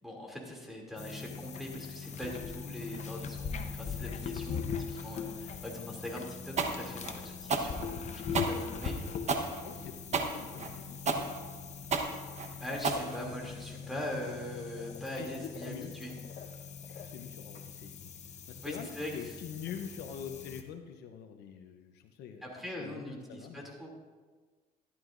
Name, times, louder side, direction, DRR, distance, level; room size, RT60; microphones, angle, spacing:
voice 1, 0.0-9.0 12.6-16.2 18.6-19.3 22.4-23.9, left 1 dB, ahead, -1 dB, 2.7 m, -42 dB
sound 1, 1.0-20.6, left 6 dB, 45° left, 0.9 m, -41 dB
sound 2, 6.6-13.6, right 4 dB, 40° right, 1.1 m, -32 dB
voice 2, 9.6-11.3 12.4-12.8 13.2-13.3 13.8-13.9 15.1-15.9 16.9-18.1 18.5-23.7, left 7 dB, 75° left, 6 dB, 0.8 m, -45 dB
14.0 x 11.5 x 2.6 m, 1.4 s
cardioid pair, 110°, 17 cm